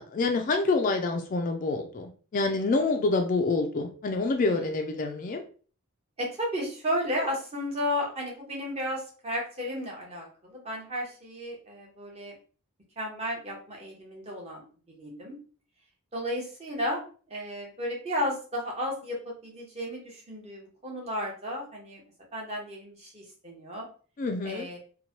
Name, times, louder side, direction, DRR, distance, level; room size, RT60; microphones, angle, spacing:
voice 1, 0.0-5.4 24.2-24.7, left 3 dB, 35° left, 4 dB, 0.3 m, -27 dB
voice 2, 6.2-10.3 10.5-12.3 13.0-14.6 14.9-15.4 16.1-17.0 17.3-22.0 22.3-23.9 24.4-24.8, equal, 30° right, -2 dB, 0.9 m, -33 dB
3.0 x 2.1 x 2.8 m, 0.39 s
head